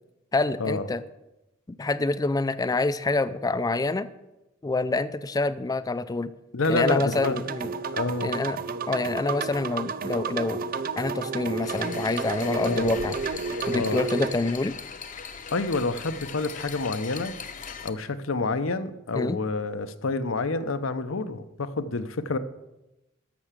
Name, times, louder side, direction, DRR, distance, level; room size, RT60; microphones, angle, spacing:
voice 1, 0.3-1.0 1.8-4.1 4.6-6.3 6.7-7.7 8.2-8.6 8.9-10.6 11.0-13.2 13.7-14.7 19.1-19.4, left 3 dB, 20° left, 12 dB, 0.4 m, -26 dB
voice 2, 6.5-7.4 7.9-8.3 12.7-12.9 13.7-14.0 15.5-17.3 17.8-22.4, left 3 dB, 90° left, 10 dB, 0.8 m, -28 dB
sound 1, 6.6-14.3, right 4 dB, 45° right, 0.5 m, -32 dB
sound 2, 11.6-17.9, left 6 dB, 40° left, 0.7 m, -40 dB
13.5 x 5.9 x 7.4 m, 0.97 s
head